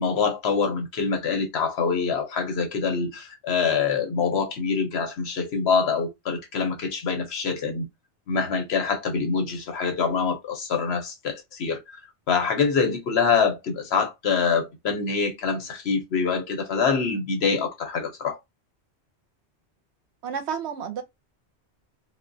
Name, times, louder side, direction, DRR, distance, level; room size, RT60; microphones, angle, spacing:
voice 1, 0.0-7.9 8.3-12.0 12.3-18.4, left 5 dB, 65° left, 1.0 m, -25 dB
voice 2, 20.2-21.0, right 7 dB, 75° right, 0.9 m, -30 dB
2.4 x 2.2 x 2.6 m
omnidirectional pair, 1.2 m